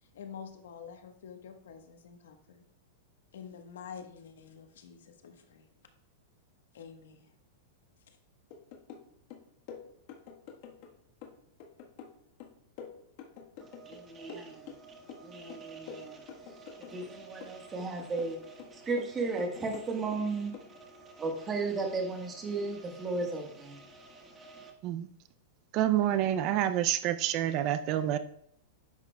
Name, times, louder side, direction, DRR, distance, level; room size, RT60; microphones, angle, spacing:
voice 1, 0.1-2.7 3.3-5.7 6.7-7.3 8.1-8.2, left 7 dB, 90° left, 6 dB, 1.1 m, -48 dB
sound 1, 8.5-9.1 9.3-10.9 11.2-14.0 14.3-15.2 15.5-17.1 17.4-18.3 18.6-20.2 20.5-20.7, left 7 dB, 50° left, 1.3 m, -47 dB
voice 2, 13.6-24.7, right 3 dB, 20° right, 3 dB, 1.4 m, -36 dB
voice 3, 25.7-28.2, right 12 dB, 35° right, 12 dB, 0.4 m, -28 dB
10.5 x 7.2 x 2.3 m, 0.69 s
supercardioid pair, 155°, 0 cm